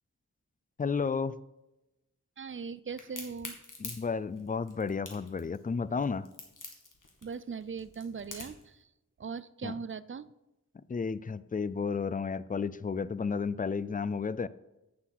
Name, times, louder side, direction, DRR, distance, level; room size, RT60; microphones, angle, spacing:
voice 1, 0.8-1.4 3.8-6.3 9.6-9.7 10.9-14.5, left 5 dB, 25° left, 17 dB, 0.4 m, -32 dB
voice 2, 2.4-3.6 7.2-8.9 9.2-10.3, right 5 dB, 40° right, 16 dB, 0.4 m, -39 dB
Crack, 3.0-8.7, left 3 dB, 70° left, 1.8 m, -45 dB
8.8 x 7.2 x 4.6 m, 0.96 s
wide cardioid pair, 60°, 32 cm